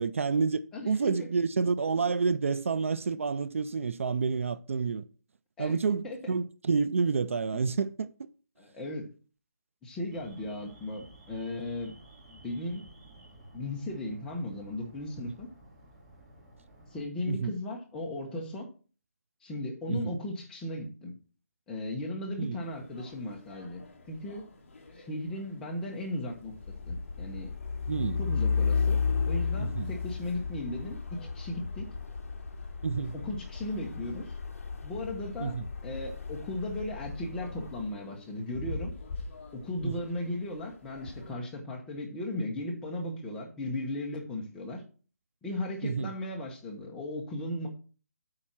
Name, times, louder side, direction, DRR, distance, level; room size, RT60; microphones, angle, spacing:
voice 1, 0.0-5.0 5.6-8.1 17.3-17.5 19.9-20.2 22.4-22.6 27.9-28.2 29.6-29.9 32.8-33.1 35.4-35.7 39.8-39.9 45.8-46.1, right 5 dB, 55° right, 0.5 m, -29 dB
voice 2, 0.7-1.3 5.6-5.8 6.0-6.3 8.6-9.1 9.8-11.9 12.3-12.8 13.5-15.5 16.9-18.7 19.4-21.1 21.7-24.4 25.0-26.5 26.9-27.5 28.2-31.9 33.1-34.4 34.8-38.9 39.5-44.8 45.4-47.7, left 1 dB, 5° left, 1.0 m, -36 dB
Alarm, 10.1-17.0, right 1 dB, 20° right, 2.4 m, -54 dB
sound 1, 22.6-41.4, left 3 dB, 40° left, 1.8 m, -47 dB
Truck, 26.5-37.9, left 5 dB, 60° left, 1.3 m, -33 dB
8.7 x 4.4 x 6.0 m
hypercardioid pair, 170°, 9 cm